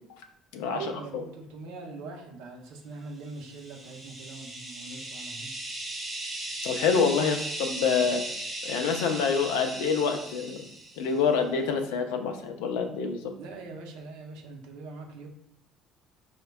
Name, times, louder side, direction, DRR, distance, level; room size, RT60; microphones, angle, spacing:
voice 1, 0.7-5.5 13.3-15.3, right 3 dB, 70° right, 0 dB, 0.6 m, -42 dB
sound 1, 3.4-11.2, right 1 dB, 10° right, 1.1 m, -37 dB
voice 2, 6.6-8.2 8.6-10.7 11.0-13.3, left 5 dB, 70° left, 5 dB, 0.4 m, -26 dB
4.6 x 2.2 x 2.2 m, 0.74 s
hypercardioid pair, 60°, 0 cm